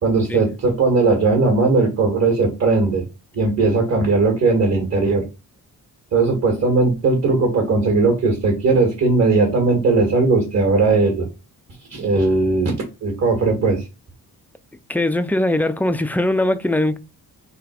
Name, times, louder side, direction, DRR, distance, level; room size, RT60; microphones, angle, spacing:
voice 1, 0.0-3.0 3.3-5.2 6.1-11.3 11.9-13.8, right 3 dB, 50° right, 1.9 m, -18 dB
voice 2, 14.9-17.0, left 1 dB, 5° left, 0.5 m, -20 dB
4.0 x 2.9 x 4.4 m
cardioid pair, 100°, 34 cm